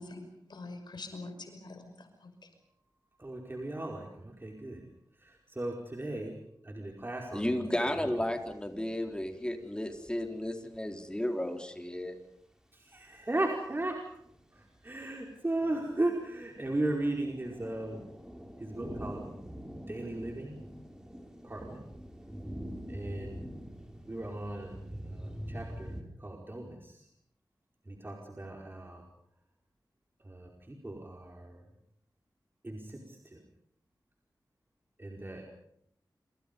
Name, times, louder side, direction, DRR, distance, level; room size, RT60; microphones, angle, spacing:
voice 1, 0.0-2.3, left 2 dB, 85° left, 6 dB, 5.8 m, -45 dB
voice 2, 3.2-4.8 5.2-6.4 6.6-7.7 8.0-8.1 12.7-14.0 14.5-18.0 18.6-19.4 19.9-20.6 21.4-21.8 22.9-23.4 24.0-27.1 27.8-29.0 30.2-31.6 32.6-33.4 35.0-35.4, right 2 dB, 30° right, 0 dB, 4.9 m, -36 dB
voice 3, 7.3-12.2, left 1 dB, 10° left, 4 dB, 4.0 m, -33 dB
sound 1, 7.7-9.6 9.9-10.8 11.3-11.5 13.3-13.5 13.8-15.0 15.2-26.0, equal, 10° right, 5.4 m, -45 dB
28.0 x 27.5 x 5.4 m, 0.71 s
wide cardioid pair, 80°, 7 cm